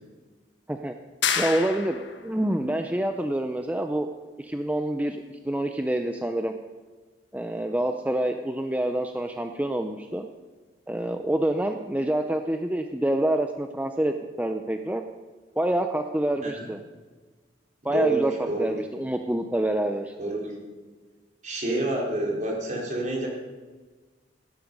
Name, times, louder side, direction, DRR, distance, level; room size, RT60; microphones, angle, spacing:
sound 1, 1.2-2.3, left 7 dB, 85° left, 1.3 m, -28 dB
voice 1, 1.4-4.1 4.4-6.5 7.3-10.3 10.9-15.0 15.6-16.8 17.8-18.3 18.6-20.1, right 1 dB, 10° right, 5 dB, 0.6 m, -27 dB
voice 2, 17.8-18.2 18.5-18.8 20.2-20.6 21.4-23.3, right 2 dB, 45° right, -2 dB, 4.0 m, -28 dB
16.5 x 12.0 x 5.4 m, 1.4 s
head